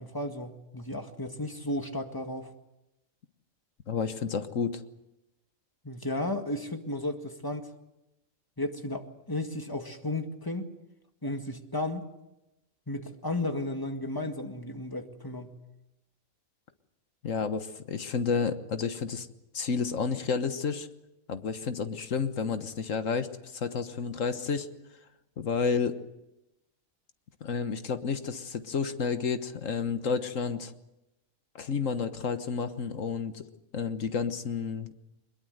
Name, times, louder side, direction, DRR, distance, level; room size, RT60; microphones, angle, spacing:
voice 1, 0.0-2.5 5.8-7.7 8.6-10.7 11.2-12.1 12.9-15.5, left 1 dB, 15° left, 5 dB, 1.9 m, -34 dB
voice 2, 3.9-4.8 17.2-19.3 19.5-20.9 21.3-24.7 25.4-26.0 27.4-30.7 31.5-33.4 33.7-34.9, left 5 dB, 70° left, 10 dB, 1.6 m, -30 dB
23.0 x 21.5 x 8.0 m, 0.93 s
omnidirectional pair, 1.4 m